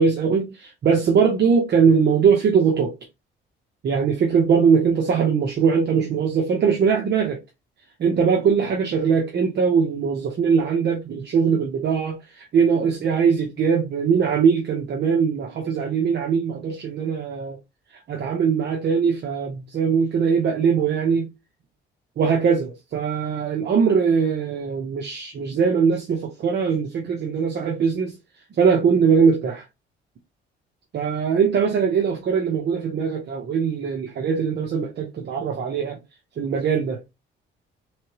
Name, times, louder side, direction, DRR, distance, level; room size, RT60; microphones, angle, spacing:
voice 1, 0.0-3.0 3.8-7.4 8.0-17.6 17.9-21.3 22.2-28.2 28.6-29.6 30.9-36.0 36.4-37.0, right 6 dB, 60° right, 0.9 m, -21 dB
3.8 x 3.2 x 3.0 m
cardioid pair, 90°, 20 cm